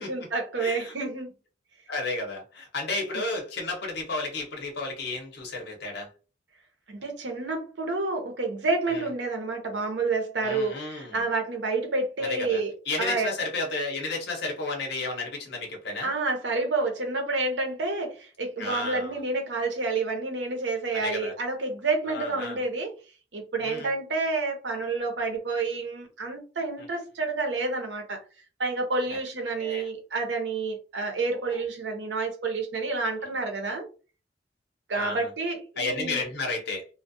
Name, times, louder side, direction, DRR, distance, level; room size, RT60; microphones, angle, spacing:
voice 1, 0.0-1.3 6.9-12.7 13.0-13.3 16.0-22.9 23.3-28.2 28.6-33.8 34.9-36.2, right 3 dB, 70° right, 0.7 m, -29 dB
voice 2, 0.6-0.9 1.9-6.1 8.9-9.1 10.4-11.2 12.2-12.6 12.9-16.1 18.6-19.2 20.9-21.3 22.1-22.6 23.6-23.9 29.6-29.9 31.5-31.6 34.9-35.3 35.8-36.9, left 3 dB, 65° left, 0.8 m, -32 dB
2.3 x 2.1 x 2.6 m
head